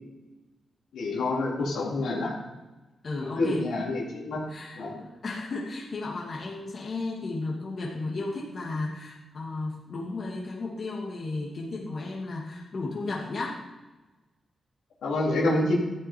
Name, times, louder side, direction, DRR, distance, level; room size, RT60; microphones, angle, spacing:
voice 1, 0.9-2.3 3.2-4.4 4.7-5.0 15.0-15.7, left 2 dB, 90° left, -4 dB, 3.7 m, -27 dB
voice 2, 3.0-3.7 4.5-13.6, left 3 dB, 60° left, -3 dB, 2.6 m, -34 dB
14.0 x 9.9 x 4.7 m, 1.1 s
cardioid pair, 60°, 0 cm